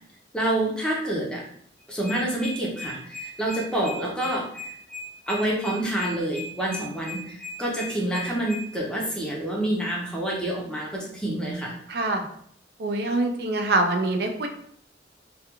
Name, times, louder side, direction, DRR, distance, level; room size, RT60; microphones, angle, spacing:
voice 1, 0.3-1.4 1.9-4.8 5.3-11.7, right 1 dB, 5° left, -4 dB, 0.5 m, -28 dB
sound 1, 1.8-8.6, left 3 dB, 45° left, 0.7 m, -37 dB
voice 2, 11.9-12.2 12.8-14.5, right 2 dB, 55° right, 5 dB, 0.4 m, -24 dB
2.3 x 2.2 x 2.9 m, 0.65 s
head